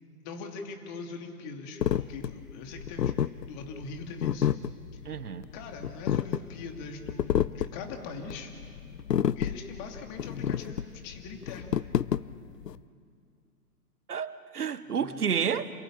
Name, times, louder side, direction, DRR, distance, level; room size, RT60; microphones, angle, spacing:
voice 1, 0.2-3.1 3.4-4.5 4.9-5.2 5.5-8.5 9.4-11.8 14.9-15.2, left 4 dB, 30° left, 3 dB, 2.8 m, -42 dB
sound 1, 1.8-12.8, left 9 dB, 80° left, 0.7 m, -30 dB
voice 2, 5.0-5.5 14.1-15.7, right 7 dB, 70° right, 14 dB, 1.3 m, -30 dB
28.0 x 16.0 x 8.8 m, 2.3 s
figure-of-eight pair, 135°, 47 cm